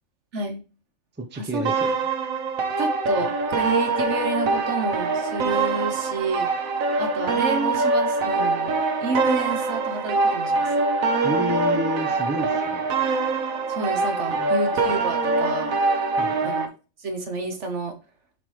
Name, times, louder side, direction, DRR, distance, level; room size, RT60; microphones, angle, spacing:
voice 1, 1.2-1.9 11.2-12.8 14.3-14.5 16.2-16.6, right 1 dB, 10° right, 5 dB, 0.7 m, -30 dB
sound 1, 1.7-16.7, right 3 dB, 85° right, 1.4 m, -24 dB
voice 2, 2.8-6.5 7.0-10.7 13.7-15.7 16.4-16.7 17.0-17.9, right 3 dB, 60° right, 5 dB, 1.4 m, -29 dB
7.5 x 5.1 x 3.2 m, 0.33 s
omnidirectional pair, 1.4 m